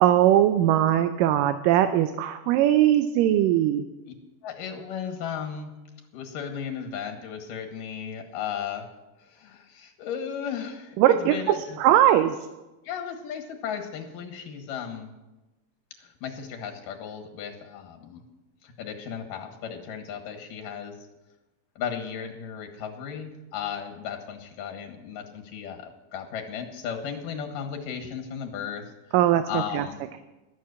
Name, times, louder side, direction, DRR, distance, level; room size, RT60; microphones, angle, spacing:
voice 1, 0.0-3.8 11.0-11.4 11.8-12.4 29.1-29.9, right 12 dB, 90° right, 9 dB, 2.3 m, -20 dB
voice 2, 4.4-5.7 6.1-8.8 9.2-11.8 12.8-15.1 16.0-18.2 18.6-21.0 21.8-29.2 29.5-30.0, left 7 dB, 85° left, 4 dB, 3.2 m, -35 dB
12.0 x 7.5 x 8.5 m, 1.0 s
omnidirectional pair, 3.8 m